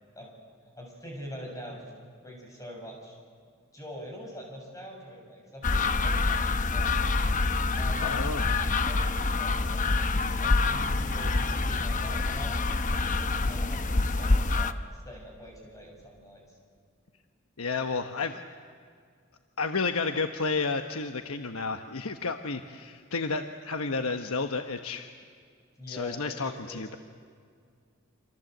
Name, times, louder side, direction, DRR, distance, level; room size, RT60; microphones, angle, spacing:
voice 1, 0.7-1.9 2.2-3.2 3.7-7.1 7.8-9.9 10.4-16.6 25.8-26.8, equal, 15° left, 0 dB, 6.9 m, -44 dB
sound 1, 5.6-14.7, left 3 dB, 35° left, 0.9 m, -26 dB
voice 2, 8.0-8.4 17.6-18.4 19.6-25.1 25.9-27.0, left 4 dB, 90° left, 6 dB, 1.1 m, -31 dB
28.0 x 26.5 x 7.9 m, 2.1 s
head